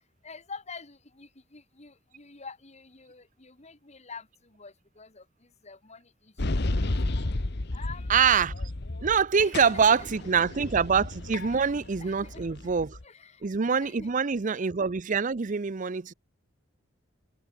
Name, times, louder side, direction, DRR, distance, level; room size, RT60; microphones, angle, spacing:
voice 1, 0.2-6.9 7.7-8.1 9.4-10.1 11.5-11.7 12.0-12.7 13.0-13.5 13.8-14.1, left 4 dB, 35° left, 2.3 m, -47 dB
sound 1, 6.4-9.2 9.5-13.0, left 2 dB, 60° left, 1.2 m, -32 dB
voice 2, 8.1-8.5 9.0-13.0 13.4-16.1, right 6 dB, 40° right, 0.6 m, -25 dB
head